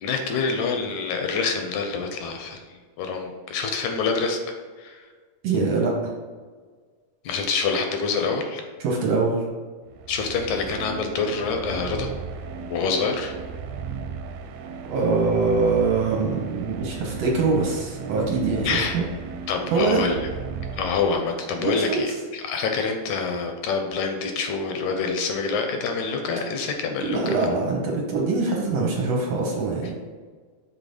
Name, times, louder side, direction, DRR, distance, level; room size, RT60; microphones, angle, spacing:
voice 1, 0.0-2.7 3.0-4.4 4.8-5.1 7.2-8.6 10.1-12.1 12.7-13.4 18.6-19.0 19.5-20.2 20.8-27.3, left 4 dB, 80° left, 4 dB, 2.0 m, -26 dB
voice 2, 5.4-6.1 8.8-9.5 14.9-19.0 19.7-20.0 21.6-22.1 27.0-29.9, right 3 dB, 65° right, -1 dB, 1.9 m, -23 dB
sound 1, 9.9-21.6, right 6 dB, 85° right, 2.1 m, -36 dB
6.2 x 3.9 x 5.2 m, 1.5 s
omnidirectional pair, 3.6 m